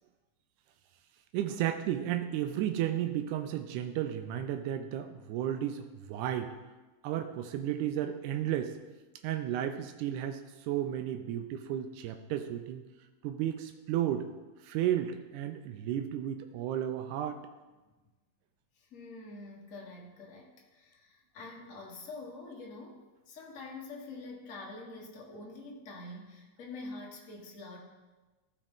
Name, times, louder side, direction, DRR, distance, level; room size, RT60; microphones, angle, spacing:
voice 1, 1.3-6.5 7.0-8.8 9.2-12.8 13.2-14.3 14.6-17.4, right 11 dB, 90° right, 6 dB, 2.0 m, -33 dB
voice 2, 18.8-27.8, left 3 dB, 45° left, -2 dB, 1.0 m, -46 dB
14.5 x 5.0 x 3.6 m, 1.2 s
omnidirectional pair, 3.4 m